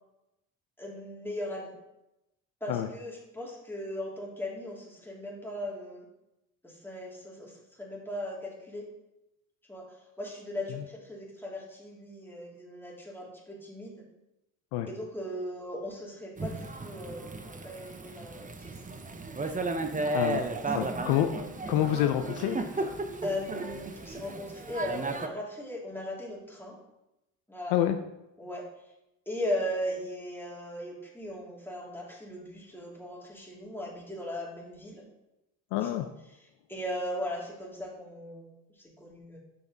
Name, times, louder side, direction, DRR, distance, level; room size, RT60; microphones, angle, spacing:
voice 1, 0.8-1.8 2.6-6.1 6.6-7.5 7.8-8.9 9.7-9.9 10.2-14.0 14.9-18.8 19.5-19.7 20.7-21.0 23.2-26.8 27.5-27.8 28.4-28.7 29.3-35.1 35.8-36.0 36.4-39.4, left 1 dB, 5° left, -4 dB, 3.1 m, -38 dB
Thunder / Rain, 16.4-25.3, right 2 dB, 20° right, 0.9 m, -34 dB
voice 2, 20.1-20.5 20.7-22.6 27.7-28.0 35.7-36.1, left 11 dB, 75° left, 8 dB, 0.7 m, -27 dB
7.8 x 5.8 x 4.0 m, 0.91 s
hypercardioid pair, 60°, 39 cm